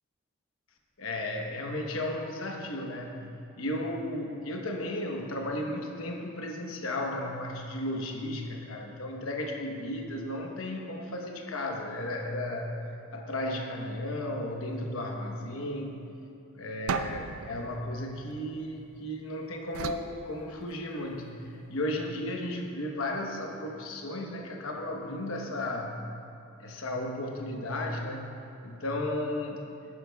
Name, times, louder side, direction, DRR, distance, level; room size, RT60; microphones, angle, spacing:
voice 1, 1.0-3.2 3.6-12.8 13.1-16.0 16.5-21.4 21.7-25.9 26.6-28.4 28.6-29.7, left 1 dB, 70° left, 1 dB, 1.0 m, -34 dB
sound 1, 16.9-19.1 19.7-21.1, right 5 dB, 65° right, 0.4 m, -37 dB
11.5 x 9.6 x 2.3 m, 2.8 s
head